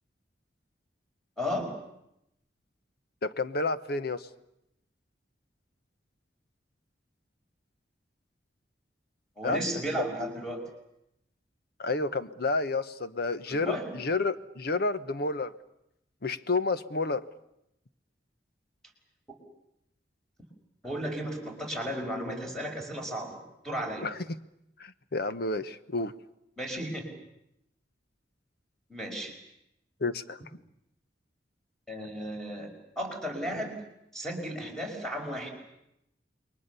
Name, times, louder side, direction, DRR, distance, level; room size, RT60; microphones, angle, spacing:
voice 1, 1.4-1.7 9.4-10.6 13.5-13.9 20.8-23.4 23.6-24.1 26.6-27.1 28.9-29.3 31.9-33.7 34.1-35.5, equal, 5° left, 2 dB, 5.2 m, -34 dB
voice 2, 3.2-4.2 9.4-9.6 11.8-15.5 16.2-17.2 24.0-24.2 24.8-26.1 30.0-30.4, left 3 dB, 60° left, 12 dB, 1.0 m, -30 dB
28.5 x 22.5 x 6.9 m, 0.83 s
head